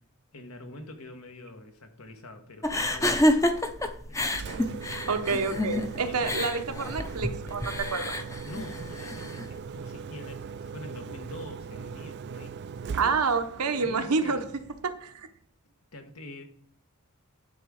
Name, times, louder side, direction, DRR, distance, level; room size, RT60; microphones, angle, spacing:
voice 1, 0.3-3.3 4.1-4.4 6.0-6.3 8.4-12.6 13.7-14.5 15.9-16.4, left 2 dB, 70° left, 5 dB, 1.4 m, -44 dB
sound 1, 2.6-9.5, left 1 dB, 15° left, 0.6 m, -28 dB
Engine, 4.2-15.1, right 6 dB, 50° right, 0.4 m, -40 dB
voice 2, 4.9-8.2 12.9-14.4 14.8-15.3, right 4 dB, 90° right, 7 dB, 1.0 m, -28 dB
10.5 x 3.6 x 6.3 m, 0.62 s
head